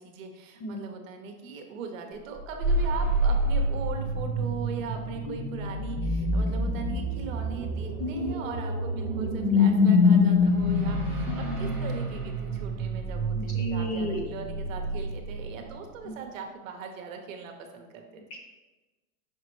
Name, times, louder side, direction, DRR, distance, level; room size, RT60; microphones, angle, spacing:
voice 1, 0.0-18.2, right 5 dB, 55° right, 4 dB, 1.0 m, -39 dB
sound 1, 2.4-15.9, left 2 dB, 5° right, 0.9 m, -26 dB
voice 2, 8.0-8.5 11.3-11.7 13.5-14.2 16.1-16.2 18.3-18.4, equal, 25° left, 0 dB, 0.7 m, -33 dB
5.7 x 5.3 x 3.2 m, 1.2 s
supercardioid pair, 165°, 45 cm